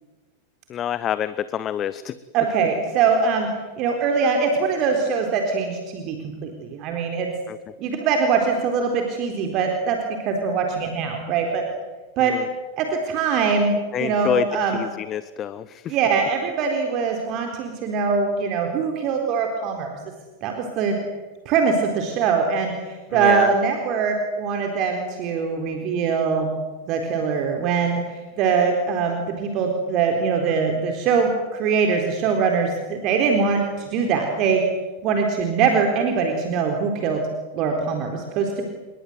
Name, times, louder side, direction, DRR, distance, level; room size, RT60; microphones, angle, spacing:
voice 1, 0.7-2.1 7.5-7.6 12.2-12.5 13.9-14.5 14.7-15.9 23.1-23.5, left 10 dB, 30° left, 16 dB, 0.9 m, -27 dB
voice 2, 2.3-3.5 3.8-6.2 6.4-7.3 7.8-10.0 10.3-11.6 12.2-12.4 12.8-14.8 15.9-19.9 20.4-21.0 21.5-26.5 26.9-28.0 28.4-34.6 35.0-37.2 37.5-38.6, right 5 dB, 40° right, 3 dB, 4.0 m, -22 dB
29.0 x 22.5 x 8.1 m, 1.2 s
figure-of-eight pair, 90°, 0 cm